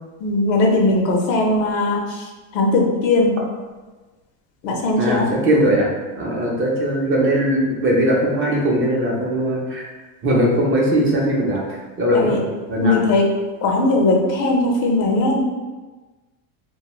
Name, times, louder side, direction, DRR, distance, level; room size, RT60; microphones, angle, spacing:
voice 1, 0.2-3.4 4.6-5.3 12.1-12.4 12.8-13.3 13.6-15.4, left 2 dB, 75° left, 1 dB, 0.7 m, -19 dB
voice 2, 5.0-5.9 6.2-9.8 10.2-12.4 12.7-13.0, equal, 30° right, -3 dB, 0.5 m, -19 dB
2.4 x 2.3 x 2.9 m, 1.3 s
supercardioid pair, 125°, 47 cm